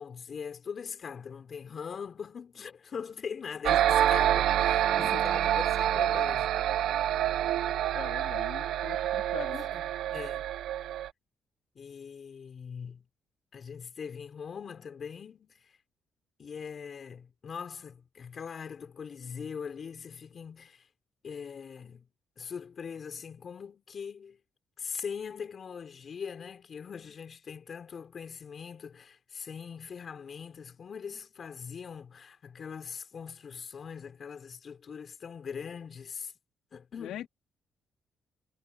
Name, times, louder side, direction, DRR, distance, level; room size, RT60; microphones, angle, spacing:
voice 1, 0.0-6.6 9.5-10.5 11.7-13.0 13.5-15.7 16.4-20.9 21.2-22.1 22.4-24.4 24.8-36.3 36.7-37.3, left 6 dB, 50° left, 4.8 m, -41 dB
sound 1, 3.6-11.1, right 11 dB, 80° right, 1.0 m, -27 dB
voice 2, 7.9-9.6 37.0-37.3, left 12 dB, 85° left, 2.8 m, -41 dB
cardioid pair, 90°, 0 cm